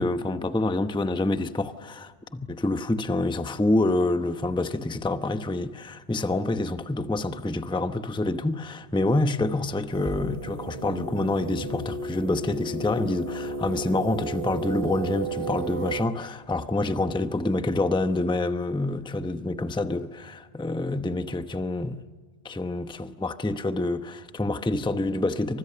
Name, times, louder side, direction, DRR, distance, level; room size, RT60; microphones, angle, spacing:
voice 1, 0.0-22.0 22.4-25.6, left 2 dB, 5° left, 0.7 m, -27 dB
sound 1, 9.9-16.1, right 2 dB, 55° right, 1.8 m, -33 dB
29.0 x 25.5 x 6.8 m
omnidirectional pair, 1.2 m